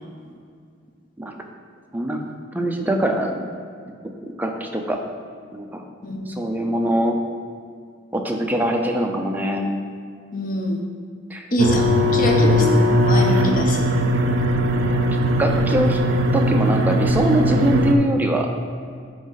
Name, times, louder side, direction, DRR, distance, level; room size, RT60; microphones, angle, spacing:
voice 1, 2.5-3.3 4.0-4.1 4.4-5.0 5.5-5.8 6.3-7.2 8.1-9.7 11.3-11.5 12.5-12.9 15.4-16.0 16.3-18.5, right 1 dB, 10° right, 2 dB, 0.5 m, -22 dB
voice 2, 6.0-6.5 10.3-10.8 11.5-11.9 12.1-13.8, equal, 45° left, 1 dB, 0.8 m, -24 dB
sound 1, 11.6-18.0, equal, 90° right, 0.5 m, -19 dB
8.6 x 3.1 x 4.1 m, 2.2 s
head